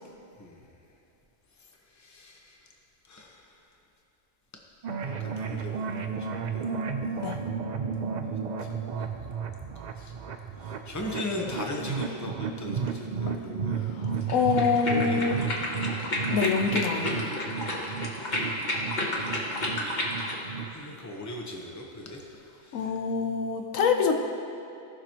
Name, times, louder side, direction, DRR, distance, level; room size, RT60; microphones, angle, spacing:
voice 1, 0.4-0.7 1.6-2.7 3.0-3.6 5.2-6.8 8.6-8.7 9.0-9.1 9.7-10.1 10.6-14.3 14.8-15.4 17.5-18.0 20.6-22.2 22.6-22.9, left 2 dB, 15° left, 0 dB, 0.8 m, -39 dB
sound 1, 4.8-20.8, right 6 dB, 60° right, 0.4 m, -33 dB
voice 2, 13.7-15.3 16.3-17.3 22.7-24.1, left 6 dB, 90° left, 4 dB, 1.1 m, -26 dB
sound 2, 14.2-20.4, left 1 dB, 35° left, 1.3 m, -31 dB
17.0 x 6.0 x 3.0 m, 2.7 s
omnidirectional pair, 1.3 m